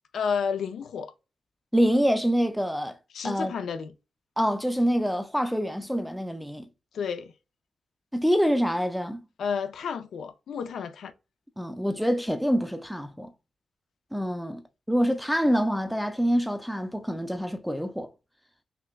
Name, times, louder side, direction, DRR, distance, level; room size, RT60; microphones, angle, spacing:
voice 1, 0.1-1.1 3.1-3.9 6.9-7.3 9.4-11.1, left 6 dB, 85° left, 0.4 m, -31 dB
voice 2, 1.7-3.0 3.2-3.5 4.4-6.7 8.1-9.2 11.6-13.3 14.1-14.6 14.9-18.1, equal, ahead, 0.3 m, -26 dB
5.8 x 2.1 x 2.2 m
wide cardioid pair, 150°, 0 cm